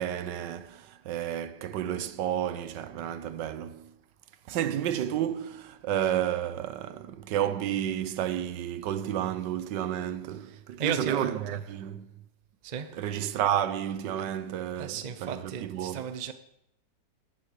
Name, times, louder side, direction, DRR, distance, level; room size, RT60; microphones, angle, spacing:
voice 1, 0.0-3.9 4.5-12.1 12.9-16.1, right 10 dB, 75° right, 1.4 m, -31 dB
voice 2, 10.8-11.7 12.6-12.9 14.8-16.3, right 7 dB, 55° right, 0.4 m, -35 dB
10.5 x 9.9 x 6.7 m
omnidirectional pair, 2.0 m